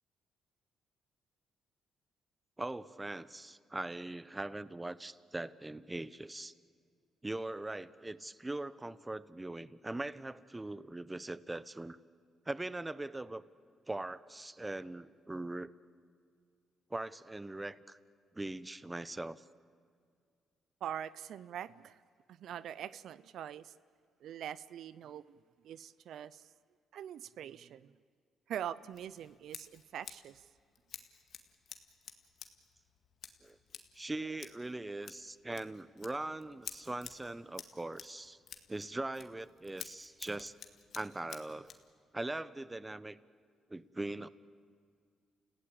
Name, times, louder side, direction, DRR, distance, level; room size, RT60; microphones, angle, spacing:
voice 1, 2.6-6.5 7.2-12.0 12.5-13.4 13.9-15.7 16.9-18.0 18.3-19.4 33.4-33.6 33.9-38.4 38.7-40.5 40.9-41.7 42.1-43.2 43.7-44.3, right 2 dB, 15° right, 17 dB, 0.8 m, -41 dB
voice 2, 20.8-22.0 22.3-23.7 24.2-25.4 25.6-26.5 26.9-27.9 28.5-30.4, right 10 dB, 70° right, 18 dB, 0.5 m, -43 dB
Scissors, 28.9-41.9, left 7 dB, 60° left, 2.0 m, -52 dB
29.5 x 16.5 x 8.8 m, 2.2 s
cardioid pair, 90°, 0 cm